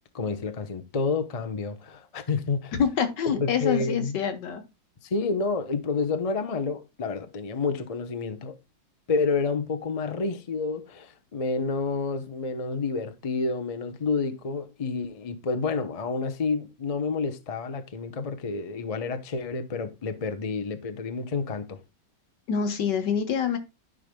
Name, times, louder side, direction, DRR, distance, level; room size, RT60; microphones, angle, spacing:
voice 1, 0.1-2.7 3.3-4.2 5.0-8.6 9.1-21.8, left 4 dB, 35° left, 0.6 m, -29 dB
voice 2, 2.7-4.6 22.5-23.6, left 7 dB, 70° left, 1.8 m, -26 dB
13.0 x 5.1 x 2.2 m
omnidirectional pair, 2.0 m